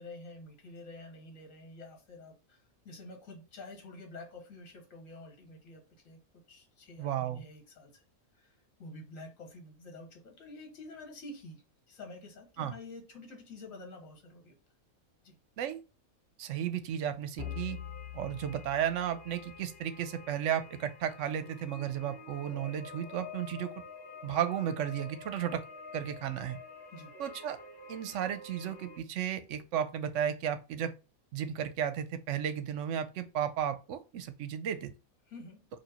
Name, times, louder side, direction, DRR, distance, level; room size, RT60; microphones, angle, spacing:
voice 1, 0.0-6.2 6.5-8.0 8.3-14.6 15.2-15.3 26.9-27.1 35.3-35.6, left 2 dB, 70° left, 1.6 m, -49 dB
voice 2, 7.0-7.4 12.6-12.7 15.6-15.8 16.4-17.8 18.1-23.7 24.2-25.6 25.9-26.6 27.2-27.6 27.9-30.9 31.3-34.9, right 9 dB, 65° right, 0.9 m, -34 dB
sound 1, 17.4-20.0, left 9 dB, 50° left, 1.3 m, -44 dB
sound 2, 17.4-29.0, left 3 dB, 20° left, 1.2 m, -49 dB
4.6 x 2.6 x 4.1 m
omnidirectional pair, 1.5 m